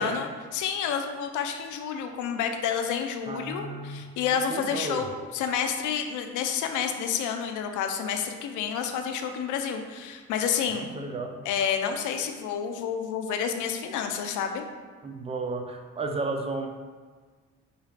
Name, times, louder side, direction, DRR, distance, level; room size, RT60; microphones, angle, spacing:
voice 1, 0.0-10.9 11.5-14.6, left 7 dB, 80° left, 6 dB, 0.5 m, -29 dB
voice 2, 3.3-4.0 4.5-5.1 10.7-11.4 15.0-16.7, right 3 dB, 20° right, 4 dB, 0.4 m, -33 dB
4.0 x 2.3 x 3.2 m, 1.5 s
cardioid pair, 90°, 30 cm